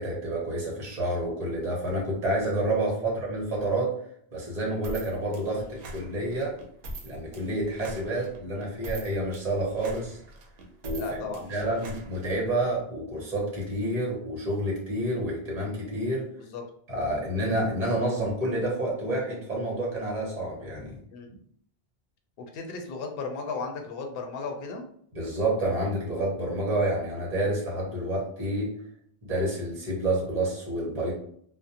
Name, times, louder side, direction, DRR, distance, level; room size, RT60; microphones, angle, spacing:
voice 1, 0.0-3.9 4.3-6.6 7.0-10.2 10.8-11.0 11.5-16.2 16.9-21.0 25.1-28.7 29.2-31.1, right 1 dB, 40° right, -3 dB, 1.0 m, -29 dB
voice 2, 2.7-3.2 5.5-5.7 8.1-8.3 10.9-11.7 16.3-16.7 21.1-21.4 22.4-24.9, left 4 dB, 65° left, 3 dB, 0.7 m, -36 dB
sound 1, 4.8-12.7, right 1 dB, 70° right, 0.8 m, -42 dB
2.4 x 2.1 x 2.7 m, 0.65 s
omnidirectional pair, 1.1 m